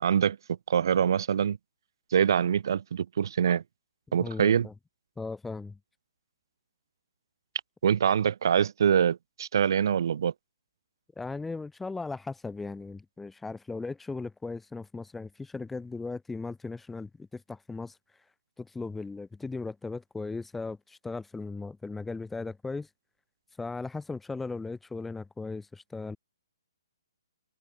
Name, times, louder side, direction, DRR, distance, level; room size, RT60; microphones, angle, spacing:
voice 1, 0.0-1.6 2.1-3.6 4.1-4.7 7.8-10.3, right 8 dB, 60° right, 0.9 m, -24 dB
voice 2, 4.2-4.7 5.2-5.8 11.2-18.0 18.6-22.9 23.6-26.2, left 3 dB, 5° left, 0.5 m, -37 dB
hypercardioid pair, 140°, 2 cm